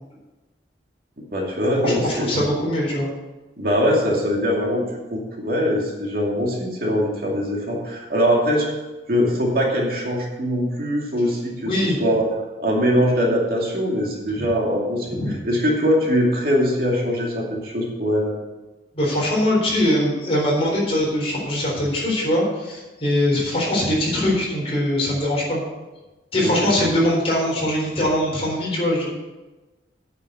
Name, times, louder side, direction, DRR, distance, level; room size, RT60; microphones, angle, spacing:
voice 1, 1.3-2.4 3.6-8.7 9.1-12.3 12.6-18.3 26.4-26.7, equal, 55° right, -2 dB, 2.5 m, -22 dB
voice 2, 1.8-3.1 11.6-12.0 14.3-14.5 15.0-15.3 18.9-25.6 26.3-29.1, left 1 dB, 35° left, -4 dB, 4.0 m, -22 dB
8.9 x 6.8 x 8.0 m, 1.1 s
head